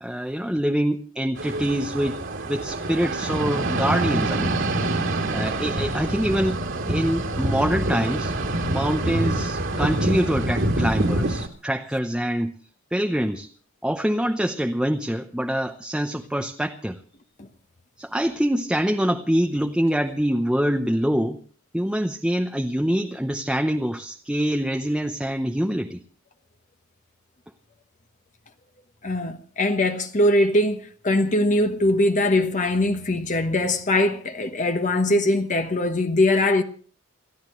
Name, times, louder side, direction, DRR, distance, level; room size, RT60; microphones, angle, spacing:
voice 1, 0.0-2.2 2.5-4.6 5.3-6.6 6.9-8.3 8.6-12.6 12.9-13.5 13.8-17.0 18.0-21.4 21.7-26.0, equal, 5° right, 0.7 m, -25 dB
sound 1, 1.4-11.5, right 1 dB, 65° right, 2.8 m, -26 dB
voice 2, 29.0-36.6, left 1 dB, 40° left, 1.1 m, -21 dB
28.5 x 14.0 x 3.2 m
head